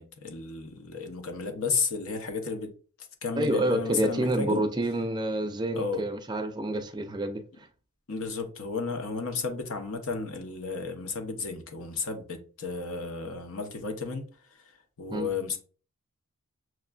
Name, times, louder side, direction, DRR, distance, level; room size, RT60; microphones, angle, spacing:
voice 1, 0.0-2.7 3.2-4.7 5.7-6.0 8.1-15.6, left 4 dB, 70° left, 0.8 m, -33 dB
voice 2, 3.4-7.4 15.1-15.3, right 1 dB, 20° right, 0.3 m, -28 dB
6.1 x 2.3 x 2.3 m
head